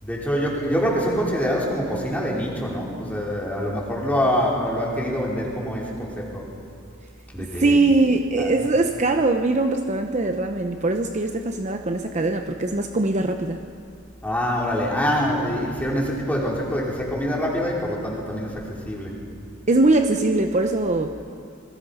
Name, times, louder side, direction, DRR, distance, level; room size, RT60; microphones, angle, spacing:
voice 1, 0.0-6.5 7.3-7.8 8.4-8.5 14.2-19.1, equal, 5° left, -4 dB, 4.4 m, -25 dB
voice 2, 7.4-13.6 19.7-21.1, right 2 dB, 35° right, 6 dB, 0.8 m, -21 dB
27.5 x 21.0 x 5.7 m, 2.3 s
head